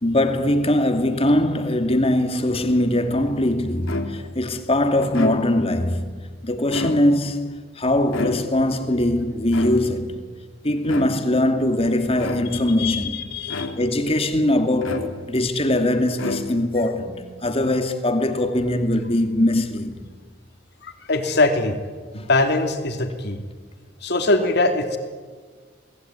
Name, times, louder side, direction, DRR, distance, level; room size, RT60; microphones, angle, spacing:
voice 1, 0.0-10.2 10.6-13.3 13.8-20.0 22.2-22.3, left 1 dB, 30° left, 2.4 m, -21 dB
sound 1, 3.9-4.4 5.0-5.8 6.6-7.4 8.1-8.8 9.5-10.2 10.8-11.4 12.2-12.8 13.5-14.1 14.8-15.5 16.1-16.9, left 2 dB, 90° left, 3.0 m, -31 dB
voice 2, 12.5-13.7 20.8-21.8 22.1-23.4 24.0-25.0, left 2 dB, 55° left, 3.3 m, -22 dB
29.0 x 20.0 x 9.5 m
head